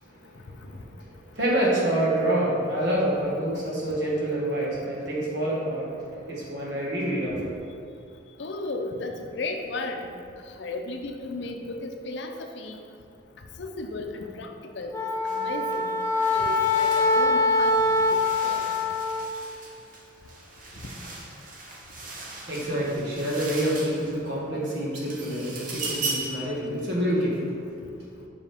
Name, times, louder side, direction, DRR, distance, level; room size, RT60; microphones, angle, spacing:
voice 1, 0.0-7.6 22.5-27.4, right 1 dB, 60° right, -5 dB, 1.6 m, -27 dB
voice 2, 8.4-10.1 10.6-12.8 13.6-14.9 15.2-15.9 16.3-18.0 18.4-18.7, left 2 dB, 65° left, 4 dB, 0.6 m, -34 dB
Wind instrument woodwind instrument, 14.9-19.3, left 2 dB, 15° left, 0.3 m, -23 dB
sound 1, 15.3-15.4 15.7-24.4 24.8-26.5, right 3 dB, 45° right, 0.9 m, -38 dB
7.3 x 5.4 x 3.5 m, 2.4 s
head